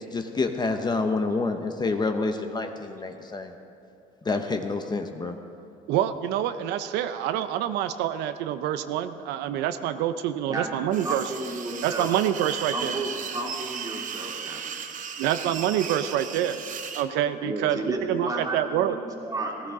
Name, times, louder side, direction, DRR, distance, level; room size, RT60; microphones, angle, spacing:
voice 1, 0.1-3.6 4.2-5.4, left 3 dB, 25° left, 6 dB, 0.7 m, -28 dB
voice 2, 5.9-11.2 11.8-13.0 15.2-16.6 16.9-19.0, right 11 dB, 90° right, 10 dB, 0.5 m, -26 dB
voice 3, 10.5-12.1 12.7-14.8 17.4-19.7, right 2 dB, 20° right, -1 dB, 2.2 m, -33 dB
sound 1, 10.9-17.1, right 7 dB, 50° right, 0.9 m, -36 dB
15.0 x 14.5 x 3.7 m, 2.6 s
cardioid pair, 110°, 17 cm